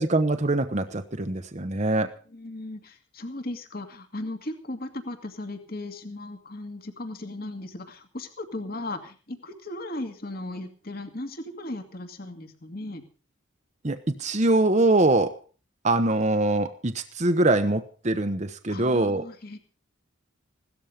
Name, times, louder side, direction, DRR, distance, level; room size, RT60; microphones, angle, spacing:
voice 1, 0.0-2.2 13.8-15.4 15.8-19.3, right 2 dB, 35° right, 8 dB, 1.0 m, -23 dB
voice 2, 2.3-13.0 18.7-19.6, left 2 dB, 50° left, 6 dB, 2.4 m, -37 dB
17.0 x 13.0 x 5.1 m, 0.38 s
head